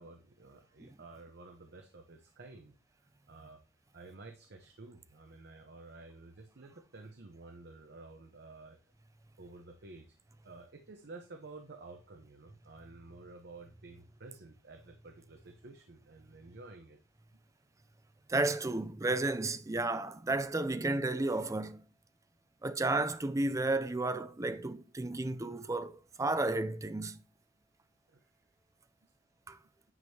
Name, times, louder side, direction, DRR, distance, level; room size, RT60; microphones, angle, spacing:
voice 1, 0.0-2.8 3.3-3.6 3.9-8.8 9.4-10.1 10.4-17.0 17.3-17.4 28.1-28.3 29.0-29.1, right 3 dB, 55° right, 0.9 m, -52 dB
voice 2, 18.3-21.8 22.6-27.2 29.5-29.6, right 2 dB, 15° right, 0.4 m, -32 dB
9.6 x 5.3 x 2.8 m
head